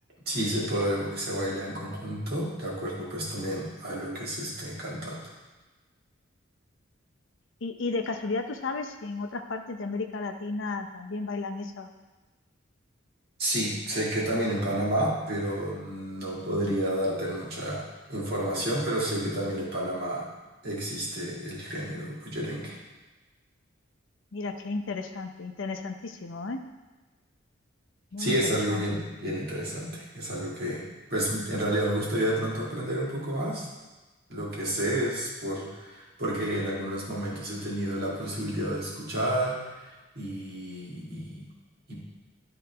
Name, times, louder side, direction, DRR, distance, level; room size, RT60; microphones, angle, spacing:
voice 1, 0.3-5.2 13.4-20.3 20.6-22.8 28.2-30.8 31.1-33.7 34.3-41.5 41.9-42.0, right 1 dB, 50° right, -6 dB, 2.0 m, -30 dB
voice 2, 7.6-11.9 24.3-26.6 28.1-29.0, left 3 dB, 70° left, 5 dB, 0.6 m, -33 dB
11.5 x 3.9 x 3.4 m, 1.2 s
head